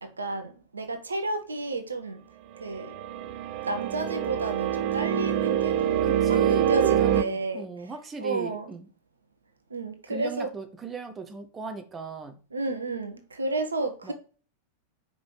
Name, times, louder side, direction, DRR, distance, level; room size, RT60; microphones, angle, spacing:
voice 1, 0.0-2.2 2.6-2.9 3.7-7.7 8.2-8.7 9.7-10.5 12.5-14.1, right 2 dB, 75° right, 0.9 m, -32 dB
sound 1, 2.7-7.2, right 10 dB, 45° right, 0.5 m, -25 dB
voice 2, 6.0-8.9 10.1-12.4 14.0-14.1, right 5 dB, 20° right, 0.9 m, -38 dB
5.4 x 5.1 x 4.6 m
figure-of-eight pair, 90°, 0 cm